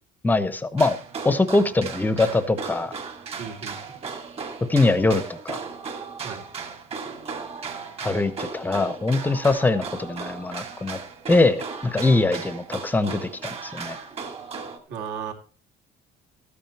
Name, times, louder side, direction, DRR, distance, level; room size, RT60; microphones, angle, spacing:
voice 1, 0.2-1.0 1.2-2.9 4.7-5.6 8.0-11.0 11.3-14.0, left 2 dB, 10° left, 13 dB, 0.9 m, -22 dB
sound 1, 0.8-14.8, right 5 dB, 30° right, 2.3 m, -36 dB
voice 2, 3.4-3.8 6.2-6.5 14.9-15.3, right 7 dB, 65° right, 3 dB, 3.2 m, -34 dB
13.5 x 9.3 x 4.3 m, 0.37 s
cardioid pair, 175°, 19 cm